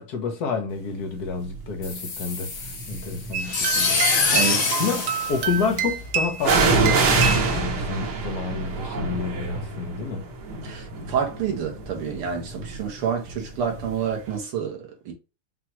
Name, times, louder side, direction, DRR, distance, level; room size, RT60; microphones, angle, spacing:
voice 1, 0.0-4.0 4.8-10.3, left 4 dB, 60° left, 1.2 m, -29 dB
sound 1, 1.4-1.8 2.6-3.5 6.4-14.0 14.3-14.4, right 3 dB, 55° right, 1.5 m, -26 dB
sound 2, 1.8-6.2, left 4 dB, 75° left, 2.4 m, -25 dB
sound 3, 3.3-7.5, right 7 dB, 75° right, 1.2 m, -28 dB
voice 2, 4.3-4.7 10.6-15.1, right 7 dB, 90° right, 2.1 m, -28 dB
5.9 x 2.4 x 3.0 m
omnidirectional pair, 2.4 m